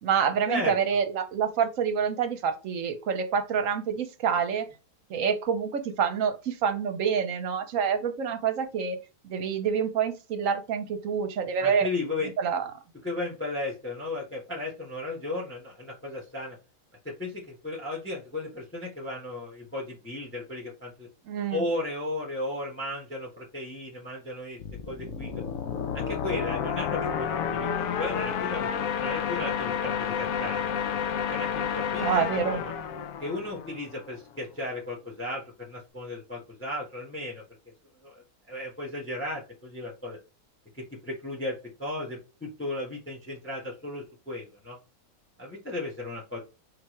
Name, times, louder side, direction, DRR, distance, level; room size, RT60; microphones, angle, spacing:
voice 1, 0.0-4.6 5.1-9.0 9.2-11.9 12.4-12.6 21.3-21.6 32.0-32.6, right 7 dB, 65° right, 7 dB, 1.1 m, -27 dB
voice 2, 11.6-12.3 13.0-16.6 17.0-21.1 21.5-24.6 24.9-25.3 25.9-30.7 31.3-32.7 33.2-37.4 38.0-38.1 38.5-40.2 40.8-44.8 45.4-46.4, left 2 dB, 10° left, -2 dB, 1.1 m, -35 dB
sound 1, 24.6-34.1, left 7 dB, 70° left, 0.9 m, -30 dB
4.7 x 3.3 x 3.1 m, 0.30 s
omnidirectional pair, 1.6 m